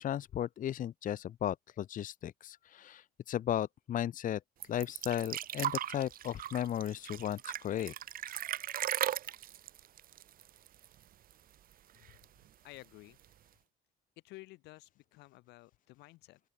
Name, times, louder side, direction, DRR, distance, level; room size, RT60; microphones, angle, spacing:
voice 1, 0.0-4.4 4.7-7.9, left 11 dB, 50° left, 1.0 m, -35 dB
sound 1, 4.6-11.0 11.3-11.4 11.7-12.4 13.2-13.3, right 11 dB, 60° right, 1.9 m, -37 dB
voice 2, 12.6-13.2 14.2-16.4, left 20 dB, 90° left, 5.8 m, -53 dB
open air
cardioid pair, 110°, 17 cm